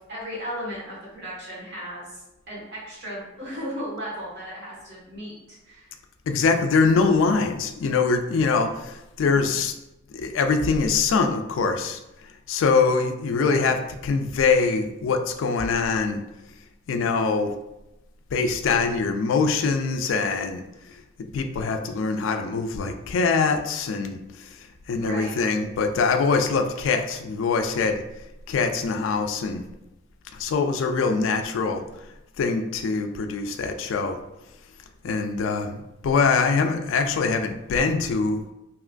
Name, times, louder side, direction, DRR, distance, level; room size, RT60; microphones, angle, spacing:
voice 1, 0.1-2.2 2.5-5.9 13.4-13.8 24.9-25.5, equal, 55° right, -7 dB, 1.5 m, -36 dB
voice 2, 6.3-9.7 10.1-12.0 12.5-13.8 14.0-16.2 16.9-17.5 18.3-20.6 21.3-24.5 24.9-28.0 28.5-29.6 30.3-31.8 32.4-34.2 35.0-38.4, left 4 dB, 80° left, 6 dB, 0.3 m, -23 dB
3.0 x 2.9 x 2.5 m, 0.93 s
head